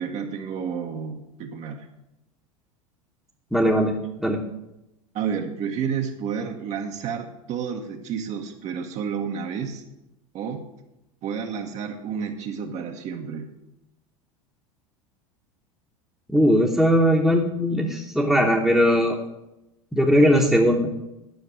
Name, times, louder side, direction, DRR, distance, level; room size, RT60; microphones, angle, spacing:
voice 1, 0.0-1.9 5.1-9.8 10.3-10.7 11.2-13.5, right 7 dB, 40° right, 3 dB, 1.1 m, -30 dB
voice 2, 3.5-4.4 16.3-19.2 19.9-20.9, equal, ahead, -2 dB, 1.2 m, -19 dB
10.5 x 6.5 x 6.5 m, 0.92 s
figure-of-eight pair, 80°, 18 cm